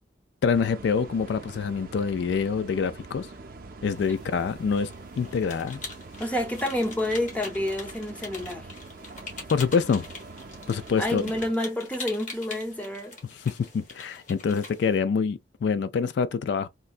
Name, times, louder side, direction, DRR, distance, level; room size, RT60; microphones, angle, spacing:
voice 1, 0.4-3.3 3.8-4.9 5.2-5.8 9.5-10.1 10.7-11.3 13.5-16.7, left 5 dB, 70° left, 0.3 m, -26 dB
sound 1, 0.5-11.5, right 3 dB, 55° right, 0.5 m, -44 dB
sound 2, 3.9-15.0, left 3 dB, 45° left, 1.2 m, -43 dB
voice 2, 6.2-8.7 11.0-13.2, left 1 dB, 10° left, 0.6 m, -29 dB
3.7 x 2.1 x 2.4 m
head